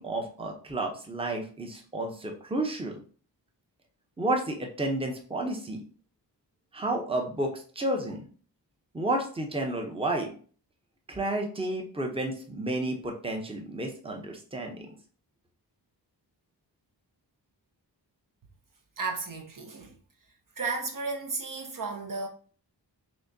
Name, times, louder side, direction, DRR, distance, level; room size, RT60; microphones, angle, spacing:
voice 1, 0.0-2.9 4.2-5.8 6.7-8.2 8.9-10.3 11.1-14.8, right 1 dB, 15° right, 0.7 m, -31 dB
voice 2, 19.0-20.0 20.6-22.3, right 4 dB, 50° right, 0.7 m, -33 dB
6.1 x 2.1 x 2.7 m
wide cardioid pair, 75°, 42 cm